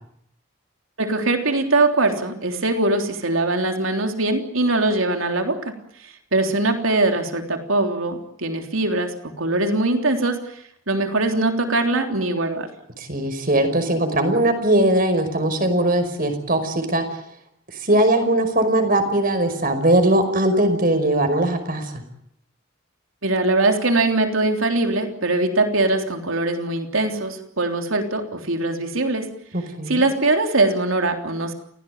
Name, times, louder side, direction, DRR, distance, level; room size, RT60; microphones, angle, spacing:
voice 1, 1.0-5.7 6.0-10.6 10.9-12.7 23.2-29.3 29.9-31.5, right 2 dB, 85° right, 5 dB, 3.5 m, -22 dB
voice 2, 13.0-17.0 17.8-22.0 29.5-30.1, right 1 dB, 45° right, 8 dB, 5.3 m, -20 dB
29.0 x 17.5 x 9.4 m, 0.72 s
head